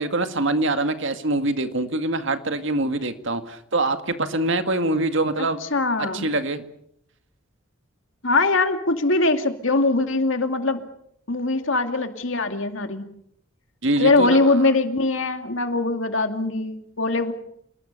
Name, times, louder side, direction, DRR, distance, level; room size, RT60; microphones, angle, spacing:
voice 1, 0.0-5.6 6.1-6.6 13.8-14.6, right 2 dB, 65° right, 2.1 m, -24 dB
voice 2, 5.6-6.3 8.2-10.8 11.3-13.0 14.0-17.3, left 3 dB, 70° left, 2.4 m, -22 dB
28.5 x 19.5 x 6.7 m
head